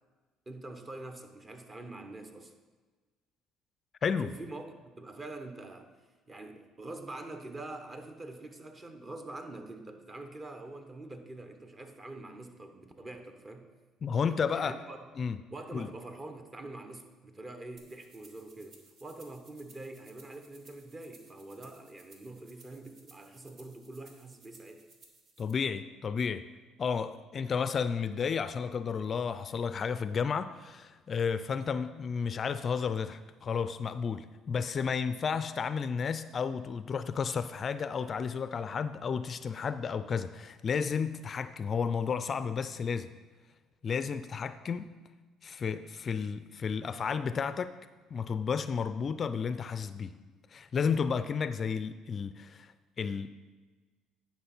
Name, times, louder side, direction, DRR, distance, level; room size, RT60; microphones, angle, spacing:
voice 1, 0.5-2.5 4.2-5.9 6.3-13.7 14.6-15.1 15.5-24.9, right 2 dB, 30° right, 6 dB, 1.1 m, -45 dB
voice 2, 14.0-14.7 15.2-15.4 15.7-15.9 25.4-26.4 26.8-43.1 43.8-44.9 45.4-47.7 48.1-50.1 50.5-53.3, left 6 dB, 45° left, 13 dB, 0.3 m, -32 dB
sound 1, 17.8-25.5, right 3 dB, 60° right, 1.5 m, -60 dB
10.0 x 5.7 x 4.3 m, 1.3 s
supercardioid pair, 70°, 0 cm